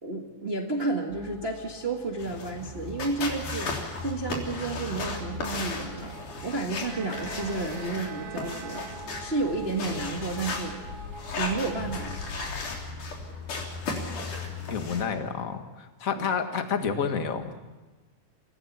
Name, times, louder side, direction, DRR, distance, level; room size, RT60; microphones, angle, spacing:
voice 1, 0.0-3.8 4.0-6.2 6.4-8.9 9.2-10.8 11.4-12.5 16.1-16.3, right 3 dB, 30° right, 1 dB, 1.2 m, -31 dB
sound 1, 1.1-12.2, right 1 dB, 10° right, 1.6 m, -47 dB
sound 2, 2.2-15.0, left 3 dB, 80° left, 5.0 m, -35 dB
Bowed string instrument, 6.9-9.6, right 12 dB, 70° right, 1.7 m, -44 dB
voice 2, 14.7-17.6, left 6 dB, 35° left, 6 dB, 1.5 m, -29 dB
28.0 x 17.0 x 7.3 m, 1.2 s
omnidirectional pair, 3.5 m